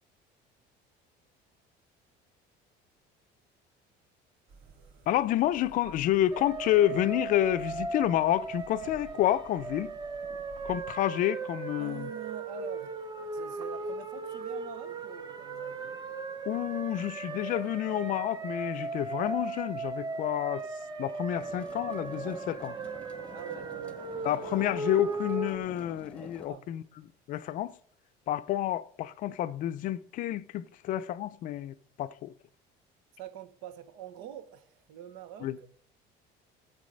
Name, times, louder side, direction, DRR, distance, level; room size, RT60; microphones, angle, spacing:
sound 1, 4.5-10.9, right 4 dB, 55° right, 1.7 m, -54 dB
voice 1, 5.1-9.9 10.6-12.1 16.5-20.6 21.0-22.8 24.2-26.8 27.3-27.7 28.3-32.3 35.4-35.6, left 12 dB, 45° left, 0.5 m, -29 dB
sound 2, 6.3-25.6, right 3 dB, 20° right, 0.7 m, -37 dB
voice 2, 11.8-13.0 13.3-16.0 23.3-24.5 26.2-26.7 33.2-35.7, right 10 dB, 85° right, 1.1 m, -45 dB
sound 3, 21.3-26.5, left 2 dB, 5° left, 0.9 m, -49 dB
13.0 x 7.3 x 5.3 m
cardioid pair, 170°, 19 cm